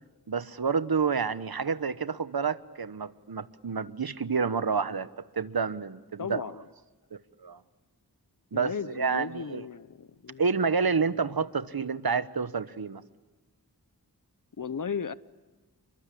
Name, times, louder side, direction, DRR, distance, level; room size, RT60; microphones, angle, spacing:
voice 1, 0.3-5.1 5.3-6.4 7.4-7.6 8.5-9.6 10.4-13.0, right 5 dB, 65° right, 14 dB, 1.1 m, -29 dB
voice 2, 6.2-6.6 8.5-10.4 14.6-15.1, left 6 dB, 50° left, 16 dB, 0.9 m, -35 dB
29.5 x 23.5 x 8.5 m, 1.2 s
wide cardioid pair, 50°, 39 cm